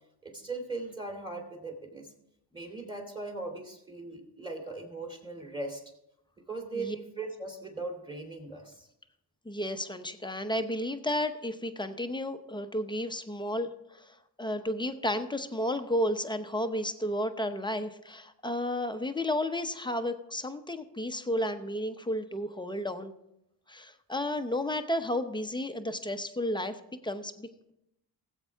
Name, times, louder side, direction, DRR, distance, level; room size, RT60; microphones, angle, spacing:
voice 1, 0.2-2.1 2.5-5.8 6.4-8.9, right 3 dB, 10° right, 2 dB, 2.7 m, -39 dB
voice 2, 9.4-23.1 23.7-27.7, left 1 dB, 10° left, 8 dB, 0.8 m, -32 dB
16.5 x 8.2 x 3.5 m, 0.81 s
cardioid pair, 100°, 41 cm